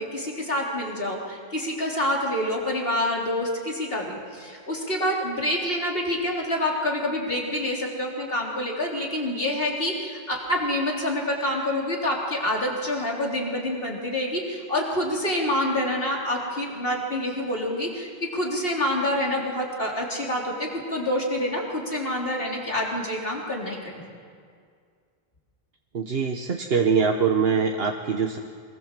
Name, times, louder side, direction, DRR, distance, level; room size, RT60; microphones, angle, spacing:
voice 1, 0.0-24.0, left 1 dB, 65° left, -2 dB, 4.1 m, -27 dB
voice 2, 25.9-28.4, right 6 dB, 70° right, 4 dB, 1.4 m, -23 dB
24.5 x 22.5 x 7.5 m, 2.1 s
omnidirectional pair, 1.0 m